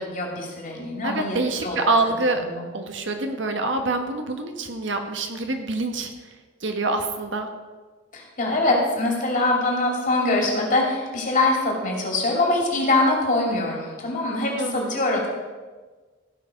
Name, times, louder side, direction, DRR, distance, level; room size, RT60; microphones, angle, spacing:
voice 1, 0.0-1.4 1.6-1.9 2.4-2.6 8.1-15.3, left 2 dB, 45° left, -1 dB, 2.8 m, -23 dB
voice 2, 1.0-2.4 2.7-6.1 6.6-7.5 14.6-15.0, right 3 dB, 70° right, 5 dB, 1.2 m, -26 dB
15.5 x 5.9 x 5.2 m, 1.4 s
head